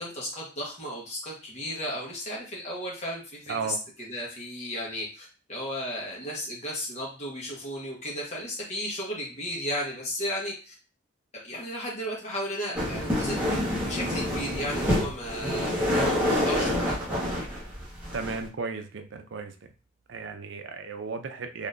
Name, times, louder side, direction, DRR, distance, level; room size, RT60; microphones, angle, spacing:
voice 1, 0.0-10.7 11.4-17.0, equal, 35° left, -3 dB, 1.2 m, -34 dB
voice 2, 3.5-3.8 18.1-19.5 20.1-21.7, right 4 dB, 70° right, 7 dB, 0.5 m, -34 dB
sound 1, 12.7-18.4, left 1 dB, 10° right, 1.2 m, -27 dB
4.2 x 2.9 x 2.5 m, 0.36 s
head